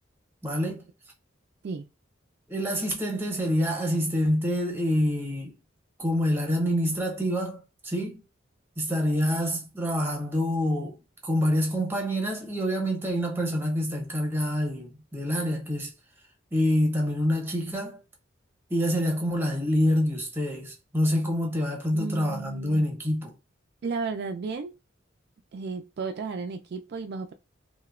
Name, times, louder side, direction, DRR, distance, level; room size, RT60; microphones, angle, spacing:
voice 1, 0.4-0.9 2.5-5.6 6.0-8.2 8.8-11.0 11.2-15.9 16.5-18.0 18.7-23.3, equal, 10° right, 0.8 m, -26 dB
voice 2, 21.9-22.8 23.8-24.7 25.5-27.3, right 4 dB, 55° right, 0.3 m, -33 dB
2.9 x 2.1 x 2.4 m
head